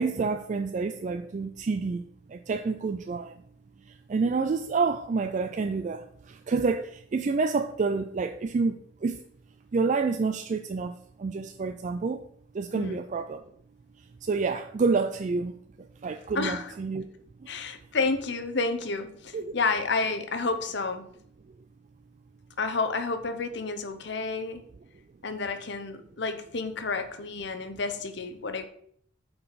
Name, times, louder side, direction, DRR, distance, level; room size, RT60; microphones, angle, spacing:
voice 1, 0.0-3.4 3.9-9.2 9.7-12.2 12.5-13.4 14.2-15.6 16.0-17.1 17.4-17.5 19.3-19.5, right 4 dB, 40° right, 8 dB, 0.3 m, -28 dB
voice 2, 16.3-16.7 17.5-21.1 22.6-24.6 25.2-28.7, left 4 dB, 60° left, 8 dB, 0.8 m, -30 dB
8.5 x 4.7 x 4.0 m, 0.66 s
head